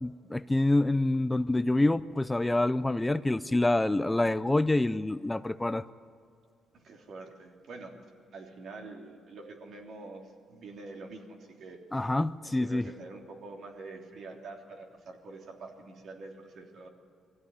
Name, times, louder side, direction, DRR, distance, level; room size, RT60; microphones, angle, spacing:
voice 1, 0.0-5.8 11.9-12.9, left 2 dB, 10° left, 14 dB, 0.5 m, -27 dB
voice 2, 6.7-7.9 8.3-12.1 12.4-16.9, right 3 dB, 65° right, 1 dB, 3.2 m, -46 dB
22.0 x 15.5 x 9.8 m, 2.3 s
cardioid pair, 90°, 0 cm